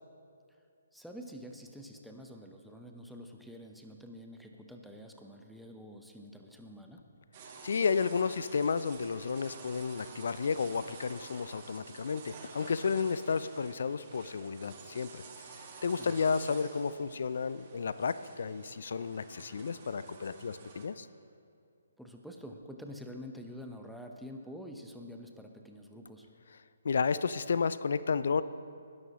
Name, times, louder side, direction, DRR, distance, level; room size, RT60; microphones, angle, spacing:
voice 1, 0.9-7.1 16.0-16.2 22.0-26.3, equal, ahead, 2 dB, 0.9 m, -47 dB
sound 1, 7.3-20.9, right 4 dB, 35° right, 1.8 m, -50 dB
voice 2, 7.6-15.2 15.8-21.1 26.8-28.4, left 5 dB, 60° left, 15 dB, 0.4 m, -32 dB
19.5 x 11.5 x 3.0 m, 2.4 s
figure-of-eight pair, 135°, 0 cm